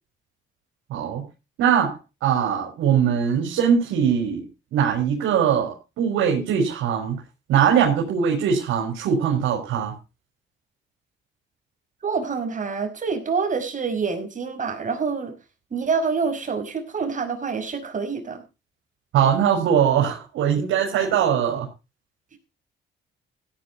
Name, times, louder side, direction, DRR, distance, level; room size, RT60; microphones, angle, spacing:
voice 1, 0.9-1.2 1.6-7.2 7.5-9.9 19.1-21.7, right 8 dB, 90° right, 0 dB, 4.5 m, -21 dB
voice 2, 12.0-15.3 15.7-18.4, right 5 dB, 40° right, 4 dB, 5.4 m, -26 dB
16.5 x 9.9 x 3.9 m, 0.29 s
cardioid pair, 90°, 20 cm